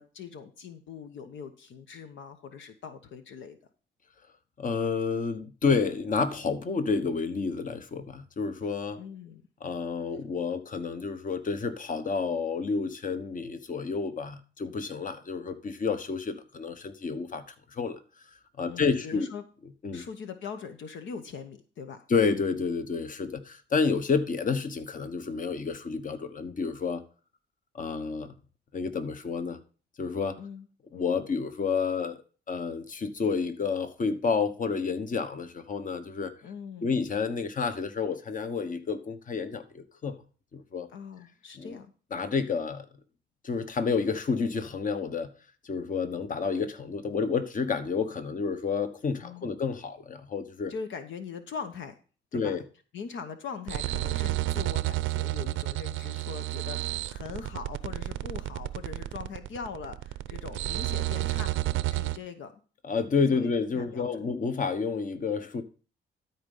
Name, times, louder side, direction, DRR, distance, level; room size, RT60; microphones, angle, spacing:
voice 1, 0.0-3.6 9.0-9.4 18.6-19.4 19.9-22.0 30.4-30.7 36.4-37.0 40.9-41.9 49.2-49.6 50.7-52.0 52.3-52.6 52.9-61.5 61.9-62.5 63.3-64.1, left 6 dB, 70° left, 1.0 m, -41 dB
voice 2, 4.6-9.0 9.6-18.0 18.6-19.3 19.8-20.0 22.1-27.0 27.7-28.3 28.7-29.6 30.0-30.4 30.9-32.2 32.5-36.3 36.8-40.2 40.5-40.9 41.6-41.8 42.1-42.9 43.4-45.3 45.6-50.7 52.3-52.6 62.8-65.6, left 5 dB, 40° left, 1.2 m, -30 dB
sound 1, 53.7-62.2, right 17 dB, 90° right, 0.6 m, -31 dB
13.0 x 4.3 x 5.5 m
cardioid pair, 90°, 20 cm